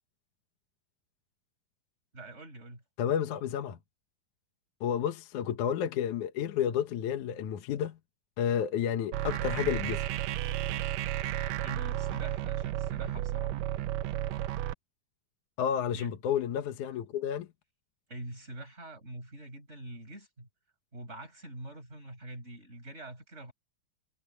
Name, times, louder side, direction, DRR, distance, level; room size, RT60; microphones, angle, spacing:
voice 1, 2.1-2.8 11.6-13.5 15.9-16.1 18.1-20.5 20.9-23.5, right 1 dB, 20° right, 6.9 m, -44 dB
voice 2, 3.0-3.8 4.8-8.0 8.4-10.0 15.6-17.5, left 9 dB, 65° left, 2.5 m, -31 dB
sound 1, 9.1-14.7, right 13 dB, 85° right, 1.5 m, -32 dB
omnidirectional pair, 4.0 m